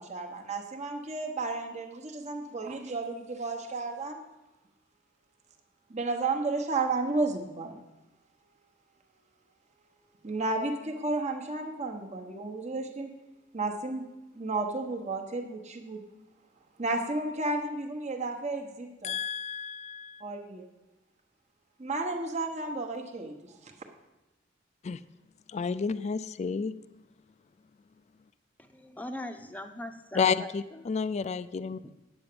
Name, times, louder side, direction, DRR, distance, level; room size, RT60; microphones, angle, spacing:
voice 1, 0.0-4.2 5.9-7.8 10.2-13.1 13.5-14.1 14.3-16.0 16.8-19.1 20.2-20.7 21.8-23.7, right 3 dB, 40° right, 2 dB, 1.1 m, -32 dB
voice 2, 19.0-20.2 24.8-25.0 25.5-26.7 30.1-31.8, left 5 dB, 35° left, 14 dB, 0.3 m, -30 dB
voice 3, 28.6-30.9 31.8-31.9, left 1 dB, 10° left, 6 dB, 0.7 m, -41 dB
9.7 x 7.9 x 6.8 m, 1.0 s
head